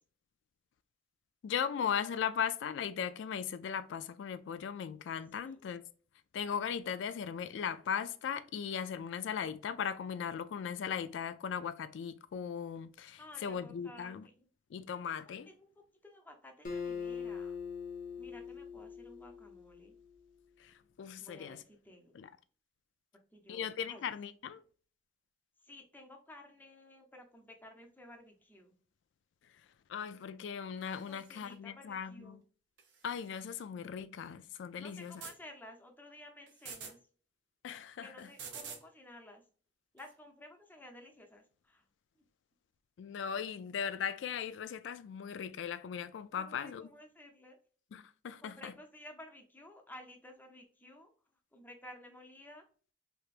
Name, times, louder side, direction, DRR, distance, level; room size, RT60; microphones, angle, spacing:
voice 1, 1.4-5.8 6.3-14.3 14.7-15.5 20.6-21.6 22.1-22.3 23.5-24.6 29.9-32.4 33.0-35.2 37.6-38.3 43.0-46.9 47.9-48.7, left 7 dB, 75° left, 0.3 m, -38 dB
voice 2, 13.2-14.1 15.2-15.7 16.0-17.5 18.2-19.9 21.2-22.1 23.3-24.0 25.6-28.7 31.1-32.4 34.8-37.0 38.0-39.4 39.9-41.8 46.3-47.6 48.4-51.1 51.5-52.6, left 1 dB, 10° left, 0.6 m, -54 dB
Acoustic guitar, 16.6-20.1, left 6 dB, 45° left, 0.7 m, -42 dB
sound 1, 30.8-31.5 32.8-33.6 34.9-35.4 36.5-37.0 38.2-38.9 40.0-40.1, right 6 dB, 70° right, 0.8 m, -49 dB
3.3 x 2.8 x 2.4 m
head